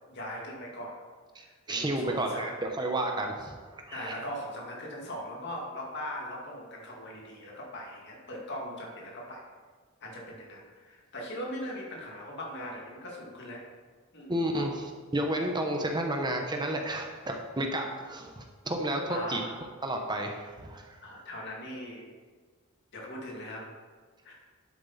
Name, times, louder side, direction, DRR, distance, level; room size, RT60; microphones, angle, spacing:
voice 1, 0.1-0.9 1.4-2.5 3.9-9.4 10.0-13.6 14.1-14.7 19.1-19.5 21.0-22.1 22.9-23.7 24.2-24.3, left 1 dB, 60° left, -2 dB, 2.2 m, -40 dB
voice 2, 1.3-4.2 14.3-14.8 15.1-19.4 19.8-20.9, right 1 dB, 20° right, 2 dB, 0.9 m, -31 dB
10.5 x 7.6 x 4.2 m, 1.5 s
head